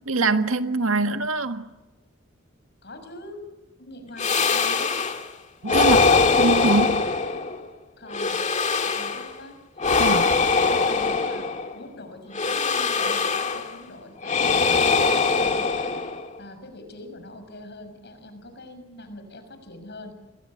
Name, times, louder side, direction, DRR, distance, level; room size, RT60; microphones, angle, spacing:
voice 1, 0.0-1.7 5.6-6.0 6.4-7.0 10.0-10.3, right 3 dB, 85° right, 8 dB, 1.7 m, -23 dB
voice 2, 2.8-3.4 3.8-5.0 8.0-8.4 8.8-9.6 9.9-11.4 11.7-15.9 16.4-20.1, left 1 dB, 55° left, 7 dB, 6.3 m, -43 dB
sound 1, 4.2-5.3 5.7-7.7 8.1-9.3 9.8-11.8 12.3-13.8 14.2-16.4, left 4 dB, 35° left, 2.1 m, -22 dB
27.5 x 23.0 x 8.7 m, 1.1 s
head